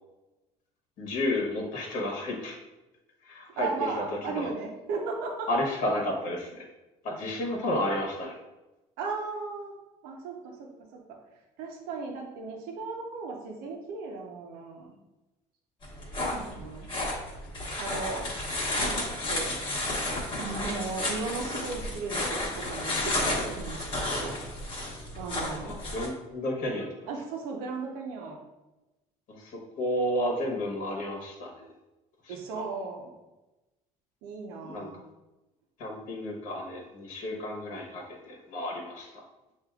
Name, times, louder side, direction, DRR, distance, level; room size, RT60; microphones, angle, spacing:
voice 1, 1.0-2.6 3.2-3.7 4.0-4.1 4.3-4.5 5.5-6.6 7.0-8.3 25.6-27.1 29.3-31.7 32.2-32.7 34.6-34.9 35.8-39.2, left 1 dB, 60° left, -1 dB, 1.2 m, -32 dB
voice 2, 3.6-5.5 9.0-9.7 10.0-10.7 11.1-11.2 11.6-14.9 16.2-16.9 17.8-18.3 18.7-19.6 20.0-24.4 25.2-25.8 27.1-28.4 32.3-33.1 34.2-35.0, right 4 dB, 90° right, 1 dB, 0.8 m, -36 dB
sound 1, 15.8-26.1, left 1 dB, 35° left, 1.2 m, -32 dB
6.6 x 2.7 x 2.4 m, 1.0 s
cardioid pair, 135°, 15 cm